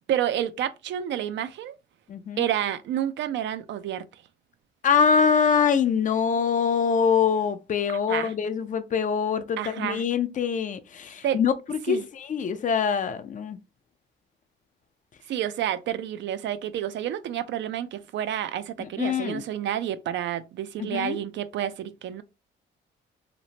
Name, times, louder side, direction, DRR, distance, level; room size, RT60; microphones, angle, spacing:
voice 1, 0.1-1.8 2.4-4.2 8.1-8.3 9.6-10.0 11.2-11.4 11.9-12.0 15.3-22.2, right 10 dB, 70° right, 0.4 m, -29 dB
voice 2, 2.1-2.5 4.8-13.6 18.8-19.4 20.8-21.2, left 6 dB, 40° left, 0.4 m, -24 dB
2.9 x 2.0 x 2.7 m
cardioid pair, 90°, 20 cm